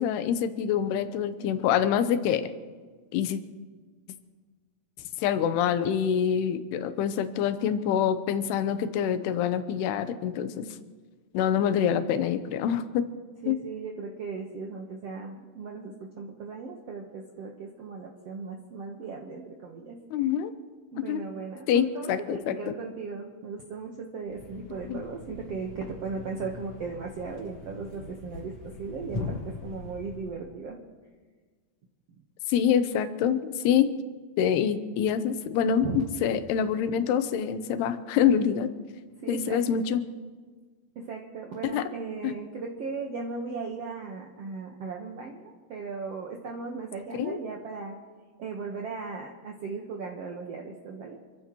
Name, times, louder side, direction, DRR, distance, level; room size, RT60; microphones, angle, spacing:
voice 1, 0.0-2.5 3.1-3.4 5.2-10.7 11.3-13.1 13.5-13.6 20.1-20.5 21.1-21.2 21.7-22.7 24.8-25.0 32.5-33.9 34.4-35.9 36.2-38.7 39.3-40.0 41.7-41.8 42.2-42.3 47.2-47.4, left 8 dB, 80° left, 10 dB, 2.9 m, -26 dB
voice 2, 1.4-1.8 13.4-20.3 20.9-30.8 35.8-36.0 39.1-39.8 40.9-48.0 48.4-51.2, right 4 dB, 75° right, 0 dB, 1.4 m, -37 dB
Thump thud, 24.2-30.5, left 3 dB, 50° left, 1.2 m, -41 dB
27.5 x 15.0 x 3.0 m, 1.5 s
omnidirectional pair, 4.7 m